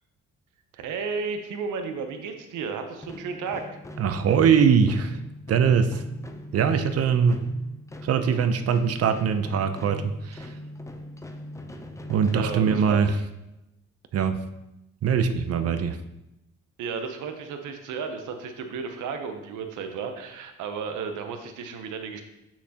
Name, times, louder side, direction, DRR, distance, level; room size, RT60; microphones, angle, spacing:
voice 1, 0.8-3.7 12.3-13.0 16.8-22.2, right 5 dB, 85° right, 6 dB, 0.8 m, -33 dB
sound 1, 3.0-13.2, left 1 dB, 10° left, 0.5 m, -41 dB
voice 2, 4.0-5.2 5.5-6.0 6.5-7.5 8.0-10.5 12.1-13.1 14.1-14.4 15.0-16.0, right 6 dB, 55° right, 10 dB, 0.6 m, -22 dB
6.3 x 6.0 x 2.8 m, 0.91 s
cardioid pair, 90°, 30 cm